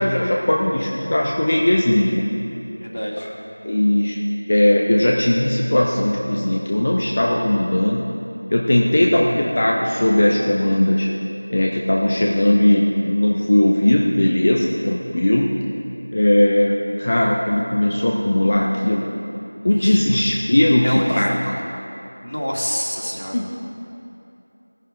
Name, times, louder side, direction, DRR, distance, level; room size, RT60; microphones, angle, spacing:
voice 1, 0.0-2.3 3.2-3.3 3.6-8.1 8.5-11.1 11.5-15.5 16.1-19.1 19.6-21.3 23.3-23.6, left 1 dB, 20° left, -2 dB, 0.4 m, -18 dB
voice 2, 2.6-3.3 19.8-20.0 20.8-21.6 22.2-23.4, equal, 65° left, -2 dB, 2.2 m, -27 dB
16.5 x 10.5 x 3.6 m, 2.8 s
figure-of-eight pair, 175°, 0 cm